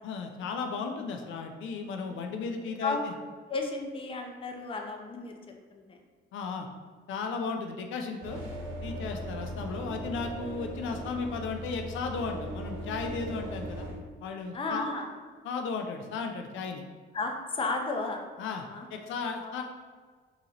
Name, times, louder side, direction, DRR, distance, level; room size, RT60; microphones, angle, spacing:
voice 1, 0.0-3.1 6.3-6.7 7.1-8.4 8.8-13.9 14.2-14.8 15.4-16.8 18.4-18.6 18.9-19.6, left 4 dB, 80° left, 4 dB, 0.4 m, -35 dB
voice 2, 3.5-5.3 5.7-6.0 7.3-7.6 14.5-15.1 17.1-18.2 18.7-18.9 19.4-19.6, left 3 dB, 25° left, 2 dB, 0.5 m, -33 dB
sound 1, 8.2-13.9, right 1 dB, 80° right, 0.8 m, -38 dB
3.8 x 2.8 x 2.8 m, 1.5 s
cardioid pair, 90°, 20 cm